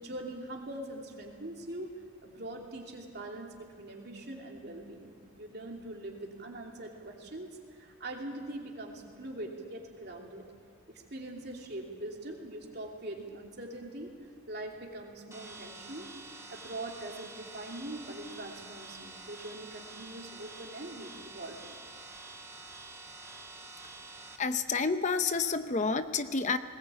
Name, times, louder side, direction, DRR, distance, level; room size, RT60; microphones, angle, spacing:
voice 1, 0.0-1.9 2.2-7.5 7.8-10.5 10.9-14.1 14.5-16.1 16.5-21.7, right 1 dB, 50° right, 0 dB, 3.0 m, -42 dB
sound 1, 15.3-24.4, right 3 dB, 15° right, 1.4 m, -48 dB
voice 2, 24.4-26.6, left 4 dB, 35° left, 10 dB, 0.7 m, -29 dB
20.5 x 19.0 x 8.4 m, 2.2 s
head